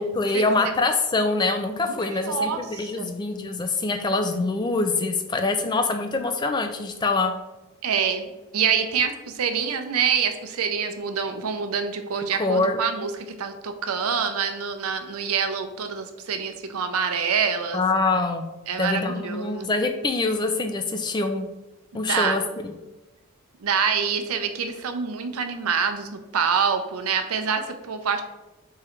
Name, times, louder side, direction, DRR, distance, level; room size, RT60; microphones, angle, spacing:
voice 1, 0.0-7.3 12.4-12.8 17.7-18.5 18.8-21.5 21.9-22.7, left 3 dB, 20° left, 6 dB, 0.3 m, -24 dB
voice 2, 1.9-3.1 7.8-17.8 18.7-19.7 21.9-22.4 23.6-28.2, right 6 dB, 80° right, 7 dB, 0.6 m, -26 dB
3.7 x 3.1 x 4.3 m, 1.1 s
head